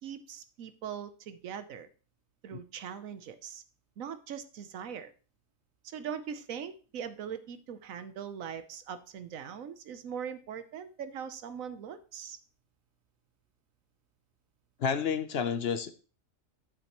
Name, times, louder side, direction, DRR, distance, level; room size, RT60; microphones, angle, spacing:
voice 1, 0.0-1.9 2.4-3.6 4.0-5.1 5.8-12.4, right 8 dB, 80° right, 11 dB, 1.2 m, -41 dB
voice 2, 14.8-15.9, left 7 dB, 55° left, 11 dB, 0.8 m, -30 dB
10.5 x 7.4 x 3.0 m, 0.37 s
omnidirectional pair, 1.4 m